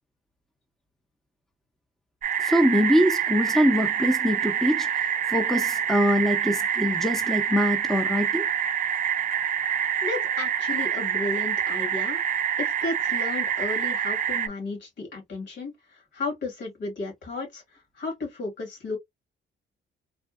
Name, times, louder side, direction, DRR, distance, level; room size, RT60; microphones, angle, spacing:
sound 1, 2.2-14.5, right 9 dB, 45° right, 0.4 m, -26 dB
voice 1, 2.4-4.9 5.3-8.5, equal, ahead, 0.7 m, -23 dB
voice 2, 10.0-12.2 12.6-19.0, left 3 dB, 70° left, 2.1 m, -33 dB
3.5 x 2.4 x 2.4 m
cardioid pair, 90°, 20 cm